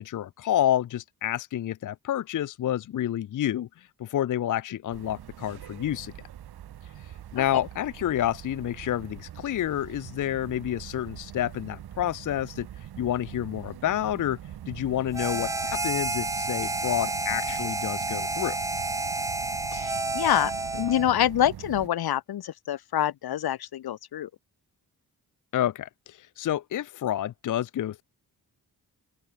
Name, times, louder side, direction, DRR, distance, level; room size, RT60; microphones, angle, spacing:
voice 1, 0.0-6.1 7.0-14.4 14.7-18.6 25.5-28.0, left 11 dB, 55° left, 0.5 m, -29 dB
sound 1, 4.9-21.9, right 11 dB, 90° right, 1.1 m, -43 dB
voice 2, 7.4-7.7 19.7-24.3, left 11 dB, 80° left, 0.9 m, -26 dB
Harmonica, 15.1-21.1, right 2 dB, 10° right, 0.4 m, -30 dB
open air
wide cardioid pair, 135°, 37 cm